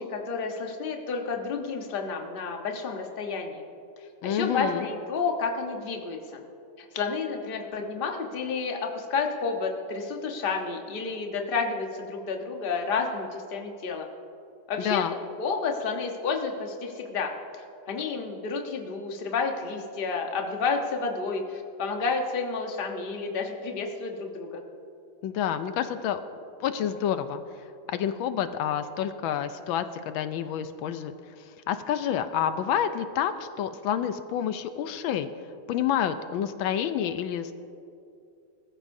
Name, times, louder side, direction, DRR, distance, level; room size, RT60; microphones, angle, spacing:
voice 1, 0.0-3.6 4.0-6.4 6.8-14.1 14.7-15.0 15.4-24.6, left 4 dB, 35° left, 2 dB, 1.0 m, -30 dB
voice 2, 4.2-4.9 14.8-15.1 25.2-26.2 26.6-27.4 27.9-35.3 35.7-37.5, left 9 dB, 80° left, 10 dB, 1.4 m, -28 dB
21.0 x 14.0 x 2.7 m, 2.5 s
omnidirectional pair, 2.2 m